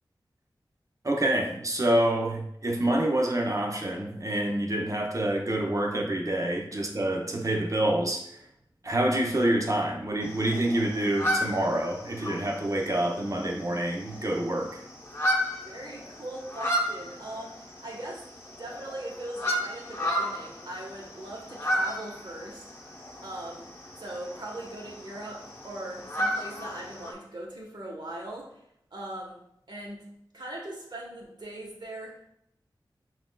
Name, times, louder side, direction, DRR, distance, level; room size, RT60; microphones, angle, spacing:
voice 1, 1.0-8.3 8.8-14.8, right 1 dB, 40° right, 0.7 m, -27 dB
sound 1, 10.2-27.1, equal, 30° left, 0.9 m, -34 dB
voice 2, 15.6-18.2 18.6-22.6 23.2-23.7 24.0-28.6 28.9-29.4 29.7-30.0 30.3-32.3, right 1 dB, 55° right, 1.2 m, -40 dB
5.8 x 2.5 x 2.3 m
wide cardioid pair, 55°, 9 cm